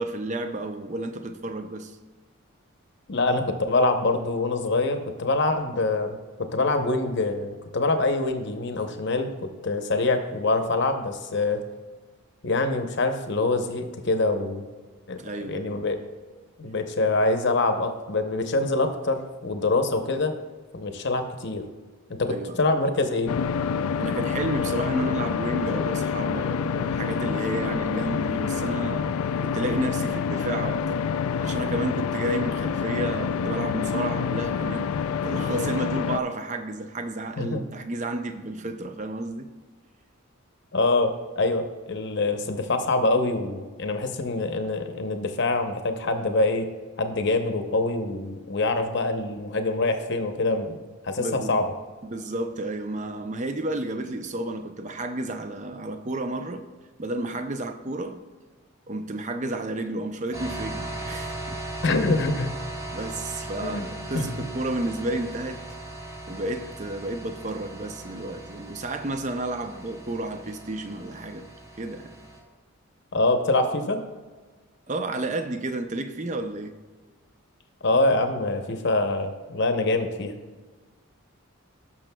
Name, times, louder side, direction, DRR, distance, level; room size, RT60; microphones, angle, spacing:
voice 1, 0.0-2.0 15.2-15.8 22.3-22.6 24.0-29.1 29.4-31.0 31.4-34.9 35.2-39.5 51.2-51.6 52.0-56.6 57.0-58.2 58.9-61.6 62.9-65.6 66.3-71.5 71.8-72.1 74.9-76.7, right 2 dB, 35° right, 8 dB, 0.5 m, -31 dB
voice 2, 3.1-11.6 12.4-14.6 15.1-16.0 16.6-20.3 20.7-21.7 22.2-23.3 37.4-37.6 40.7-46.7 47.0-50.8 51.0-51.7 61.8-62.5 63.6-63.9 64.1-64.3 73.1-74.0 77.8-80.3, left 2 dB, 50° left, 6 dB, 0.8 m, -25 dB
sound 1, 23.3-36.2, left 6 dB, 80° left, 0.3 m, -27 dB
sound 2, 60.3-72.4, right 1 dB, 15° right, 1.5 m, -38 dB
16.5 x 6.1 x 2.2 m, 1.4 s
head